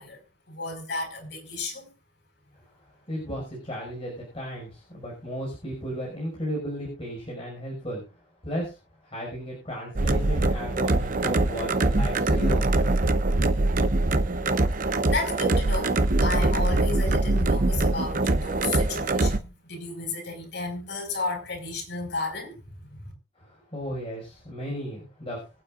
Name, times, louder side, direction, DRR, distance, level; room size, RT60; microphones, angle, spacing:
voice 1, 0.0-1.9 15.0-23.1, left 3 dB, 70° left, 5.0 m, -33 dB
voice 2, 3.1-8.0 8.4-8.8 9.0-12.7 23.4-25.4, equal, 35° left, 5.8 m, -34 dB
sound 1, 10.0-19.4, right 2 dB, 50° right, 0.8 m, -23 dB
24.5 x 8.8 x 2.5 m
head